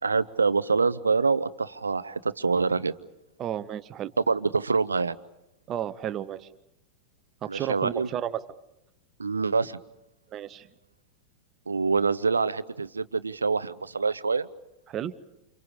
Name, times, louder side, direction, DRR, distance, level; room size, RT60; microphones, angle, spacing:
voice 1, 0.0-2.9 4.3-5.2 7.5-8.1 9.2-9.8 11.7-14.5, right 4 dB, 75° right, 16 dB, 0.8 m, -25 dB
voice 2, 3.4-4.1 5.7-6.5 7.4-8.4 10.3-10.7 14.9-15.1, right 10 dB, 30° right, 13 dB, 1.1 m, -32 dB
29.5 x 28.5 x 5.0 m, 0.87 s
figure-of-eight pair, 95°, 0 cm